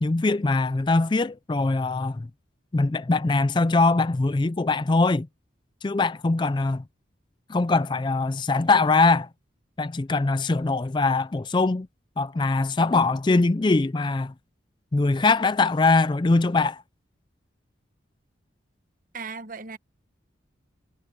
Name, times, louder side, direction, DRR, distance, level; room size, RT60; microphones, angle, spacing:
voice 1, 0.0-2.3 2.7-5.3 5.8-6.8 7.5-9.3 9.8-11.9 12.2-14.3 14.9-16.8, left 3 dB, 25° left, 0.4 m, -22 dB
voice 2, 19.1-19.8, right 5 dB, 45° right, 1.0 m, -36 dB
head